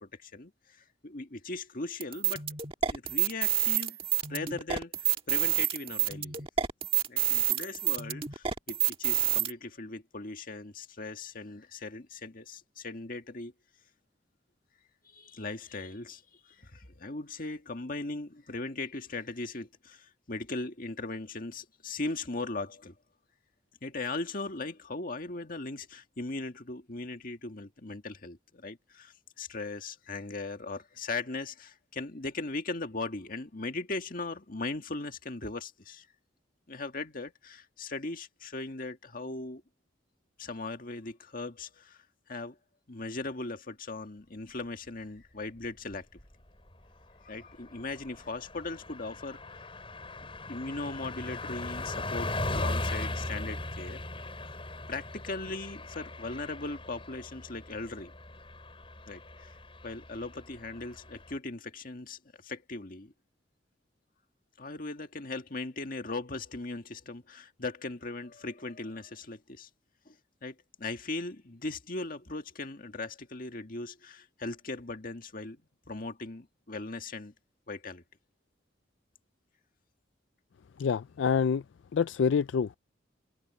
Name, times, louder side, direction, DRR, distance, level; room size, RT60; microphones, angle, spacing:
voice 1, 0.0-0.8 1.0-2.4 2.9-4.0 4.3-4.9 5.3-6.5 7.1-13.5 15.1-23.0 23.8-36.1 36.7-39.6 40.4-42.0 42.3-42.6 42.9-46.2 47.2-49.7 50.2-54.0 54.9-58.1 59.1-59.5 59.8-63.1 64.6-69.7 70.1-70.2 70.4-75.6 75.9-77.3 77.7-78.0, left 3 dB, 45° left, 1.8 m, -39 dB
sound 1, 2.0-9.5, right 12 dB, 30° right, 1.6 m, -28 dB
Car passing by, 45.7-46.3 46.7-46.8 47.1-61.4, left 2 dB, 30° left, 5.1 m, -39 dB
voice 2, 80.8-81.6 81.9-82.8, left 6 dB, 70° left, 0.4 m, -26 dB
head